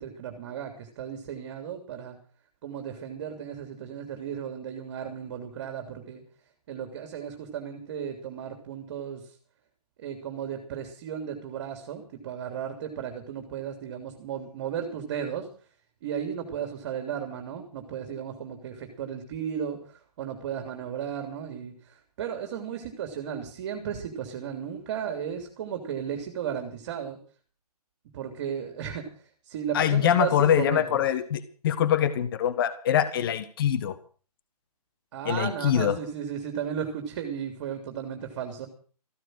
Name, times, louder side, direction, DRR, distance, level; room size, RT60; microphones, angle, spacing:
voice 1, 0.0-2.2 2.6-6.2 6.7-9.3 10.0-15.5 16.0-27.2 28.1-29.1 29.4-31.0 35.1-38.7, right 8 dB, 35° right, 5 dB, 3.1 m, -35 dB
voice 2, 29.7-34.0 35.3-36.0, left 10 dB, 35° left, 12 dB, 1.6 m, -24 dB
15.0 x 13.0 x 6.3 m, 0.41 s
figure-of-eight pair, 145°, 20 cm